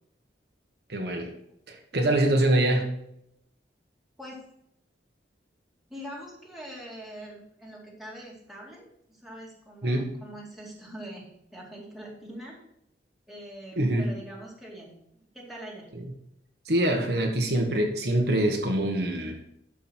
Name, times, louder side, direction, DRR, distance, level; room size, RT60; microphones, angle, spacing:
voice 1, 0.9-1.3 1.7-2.9 9.8-10.1 13.8-14.1 16.6-19.4, right 1 dB, 65° right, 2 dB, 1.3 m, -24 dB
voice 2, 5.9-12.6 13.3-15.9, equal, ahead, -4 dB, 2.2 m, -43 dB
11.5 x 5.1 x 4.4 m, 0.76 s
head